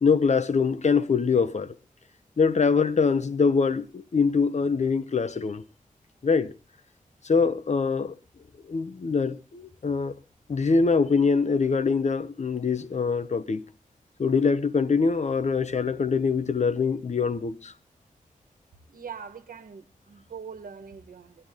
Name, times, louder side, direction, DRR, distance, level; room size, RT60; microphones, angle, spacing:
voice 1, 0.0-1.7 2.4-5.6 6.2-6.5 7.3-8.1 8.7-10.1 10.5-13.6 14.2-17.7, left 5 dB, 55° left, 0.9 m, -24 dB
voice 2, 18.9-21.3, right 6 dB, 85° right, 1.4 m, -42 dB
21.0 x 11.0 x 3.6 m
wide cardioid pair, 85°, 14 cm